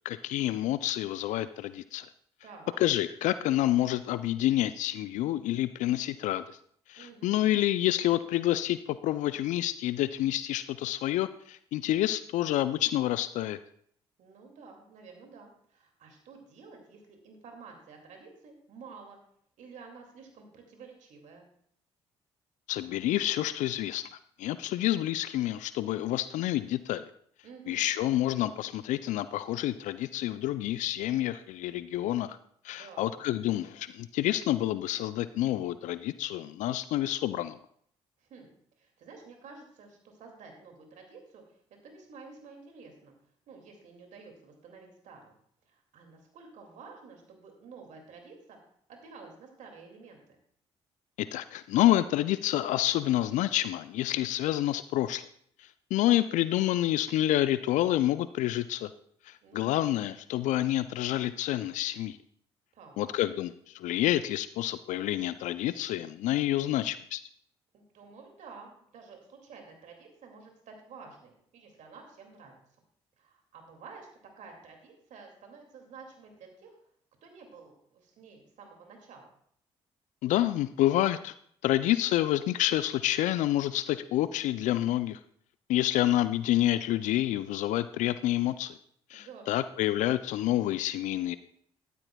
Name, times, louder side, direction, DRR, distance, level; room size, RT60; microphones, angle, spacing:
voice 1, 0.0-2.1 2.8-6.6 6.9-13.6 22.7-27.0 27.7-32.4 32.6-37.6 51.2-55.2 55.6-58.9 59.2-62.2 63.0-67.2 80.2-81.3 81.6-85.2 85.7-88.8 89.1-91.4, left 14 dB, 65° left, 14 dB, 0.4 m, -28 dB
voice 2, 2.4-2.8 7.0-7.6 14.2-19.2 19.6-21.5 27.4-27.9 32.7-33.2 38.2-38.5 38.8-43.1 43.5-45.3 45.7-48.6 48.9-50.4 59.4-59.9 62.7-63.1 67.7-72.5 73.2-74.1 74.4-76.8 77.2-79.3 89.1-89.6, right 4 dB, 65° right, 3 dB, 2.3 m, -51 dB
13.0 x 12.0 x 2.3 m, 0.65 s
hypercardioid pair, 50°, 14 cm